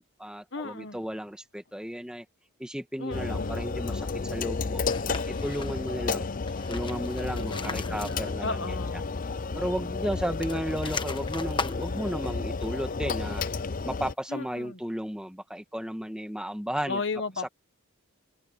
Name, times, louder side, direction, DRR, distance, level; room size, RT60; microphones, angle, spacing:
voice 1, 0.0-2.2 2.6-4.8 5.3-6.3 6.7-8.6 9.5-13.4 13.8-17.0, equal, 5° right, 1.4 m, -34 dB
voice 2, 0.5-1.0 3.0-3.6 7.4-9.1 14.3-14.8 16.9-17.5, left 3 dB, 55° left, 1.3 m, -35 dB
sound 1, 3.1-14.1, left 4 dB, 40° left, 0.5 m, -32 dB
sound 2, 4.8-6.0 6.4-8.6 8.9-9.0 10.2-13.7, left 4 dB, 20° left, 1.1 m, -39 dB
head